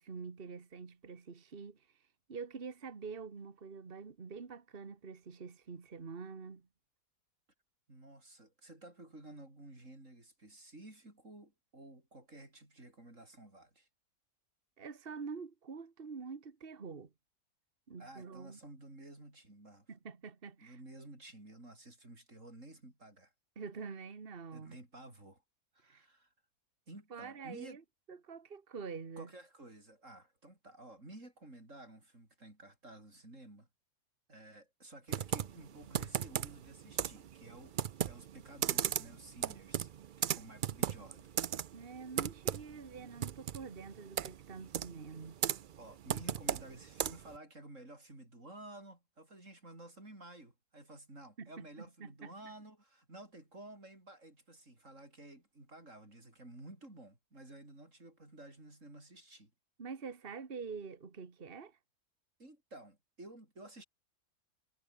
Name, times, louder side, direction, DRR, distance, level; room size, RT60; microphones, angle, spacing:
voice 1, 0.0-1.8 2.3-6.7 14.8-17.1 17.9-18.6 19.9-20.8 23.6-24.8 25.8-26.0 27.1-27.8 28.1-29.3 41.7-45.4 51.4-51.5 51.8-52.3 59.8-61.8, right 5 dB, 40° right, 1.8 m, -46 dB
voice 2, 7.9-13.9 18.0-19.9 20.6-23.3 24.5-25.4 25.7-26.3 26.9-27.8 29.2-33.7 34.3-37.8 38.0-39.9 40.2-41.4 45.8-59.5 62.4-63.8, right 2 dB, 55° right, 7.2 m, -53 dB
Computer keyboard, 35.1-47.4, right 9 dB, 75° right, 0.4 m, -37 dB
omnidirectional pair, 1.6 m